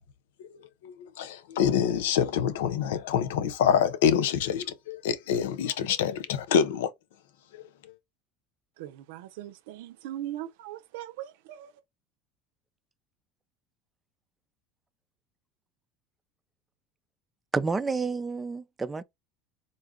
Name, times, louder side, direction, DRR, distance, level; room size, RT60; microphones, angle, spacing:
voice 1, 0.8-6.9, left 8 dB, 85° left, 0.6 m, -26 dB
voice 2, 8.8-11.8, right 13 dB, 80° right, 0.5 m, -40 dB
voice 3, 17.5-19.0, right 4 dB, 15° right, 0.4 m, -29 dB
3.8 x 2.4 x 3.6 m
supercardioid pair, 100°, 0 cm